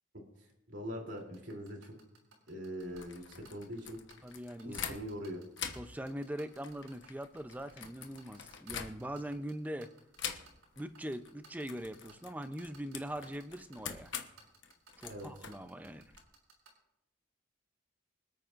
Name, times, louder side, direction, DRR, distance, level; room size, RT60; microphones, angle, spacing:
voice 1, 0.1-1.9 2.5-4.0 4.6-5.4 15.1-15.3, equal, 60° right, 1 dB, 3.1 m, -43 dB
sound 1, 1.2-16.7, right 5 dB, 90° right, 5.0 m, -58 dB
sound 2, 2.8-5.3 5.5-9.3 10.2-10.9 11.1-11.3 11.6-16.2, left 8 dB, 65° left, 1.1 m, -45 dB
voice 2, 4.2-5.0 5.7-9.9 10.8-14.1 15.0-16.1, equal, 10° right, 9 dB, 0.5 m, -42 dB
25.5 x 9.0 x 2.5 m, 0.85 s
head